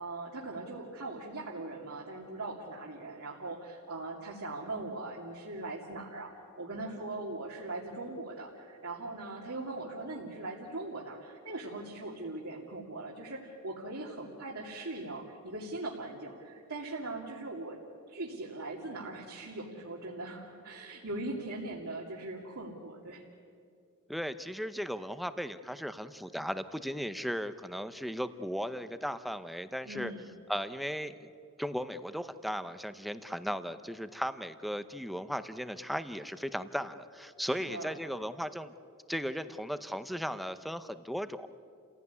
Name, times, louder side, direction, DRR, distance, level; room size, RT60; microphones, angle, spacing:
voice 1, 0.0-6.3 6.6-17.8 18.1-23.2 29.8-30.4 37.5-37.9, right 2 dB, 75° right, -3 dB, 2.7 m, -40 dB
voice 2, 24.1-30.1 30.5-31.3 31.6-38.7 39.1-41.5, equal, ahead, 11 dB, 0.7 m, -36 dB
29.5 x 16.5 x 9.6 m, 2.4 s
head